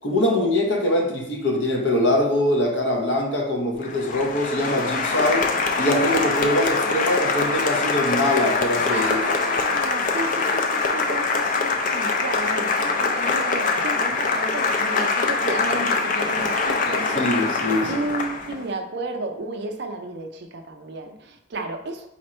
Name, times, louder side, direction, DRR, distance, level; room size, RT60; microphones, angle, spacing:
voice 1, 0.0-5.4 5.8-9.3 17.1-18.0, left 1 dB, 60° left, 1 dB, 0.8 m, -23 dB
Applause, 3.8-18.6, left 4 dB, 40° left, 0.4 m, -23 dB
voice 2, 8.9-22.1, right 2 dB, 55° right, 5 dB, 0.5 m, -33 dB
4.3 x 2.5 x 4.3 m, 0.79 s
head